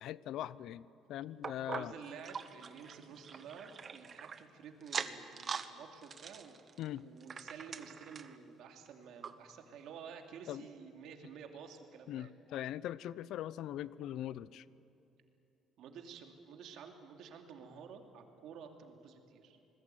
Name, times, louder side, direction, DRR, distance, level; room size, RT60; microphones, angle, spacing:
voice 1, 0.0-1.9 6.8-7.0 10.5-10.7 12.1-14.6, left 12 dB, 65° left, 19 dB, 0.6 m, -41 dB
sound 1, 1.4-4.4 4.8-5.7 6.0-8.4 8.9-9.0 9.2-9.3 10.0-10.1, right 6 dB, 30° right, 1.1 m, -43 dB
voice 2, 1.7-6.6 7.0-12.3 15.8-19.6, right 6 dB, 65° right, 4 dB, 2.8 m, -51 dB
28.0 x 20.0 x 9.3 m, 2.8 s
cardioid pair, 155°, 0 cm